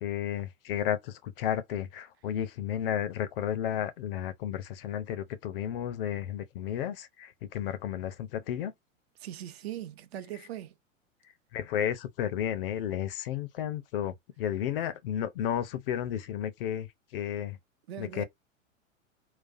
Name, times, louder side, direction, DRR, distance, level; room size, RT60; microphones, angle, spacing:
voice 1, 0.0-8.7 11.5-17.6 18.0-18.2, left 10 dB, 45° left, 0.6 m, -33 dB
voice 2, 9.2-10.7 17.9-18.2, right 11 dB, 50° right, 0.6 m, -40 dB
4.0 x 2.3 x 2.5 m
figure-of-eight pair, 95°, 40 cm